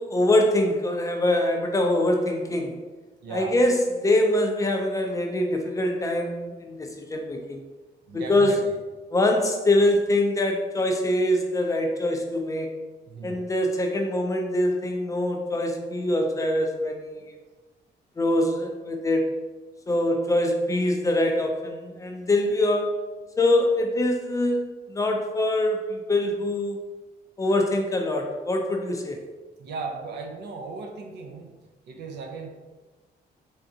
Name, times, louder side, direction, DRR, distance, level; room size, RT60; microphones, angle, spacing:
voice 1, 0.0-2.7 3.3-7.6 8.1-8.6 9.1-12.7 13.2-17.3 18.2-19.3 19.9-22.9 23.4-26.8 27.4-29.2, left 1 dB, 20° left, 2 dB, 0.3 m, -24 dB
voice 2, 3.2-3.6 8.1-8.7 13.1-13.4 29.6-31.5 31.8-32.5, right 4 dB, 75° right, 3 dB, 0.6 m, -36 dB
3.7 x 3.4 x 2.7 m, 1.2 s
cardioid pair, 170°, 18 cm